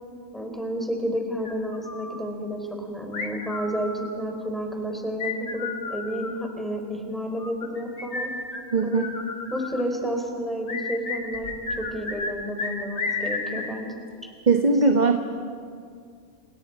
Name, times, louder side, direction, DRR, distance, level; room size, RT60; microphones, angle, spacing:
voice 1, 0.3-8.3 8.8-9.2 9.5-14.0, equal, ahead, 2 dB, 4.1 m, -31 dB
sound 1, 1.4-2.2 3.1-4.3 5.2-6.4 7.4-9.8 10.7-12.3 12.6-13.7, left 4 dB, 80° left, 2.8 m, -32 dB
voice 2, 8.7-9.0 14.5-15.2, right 3 dB, 30° right, 3 dB, 1.3 m, -19 dB
29.5 x 29.5 x 5.0 m, 2.2 s
omnidirectional pair, 1.5 m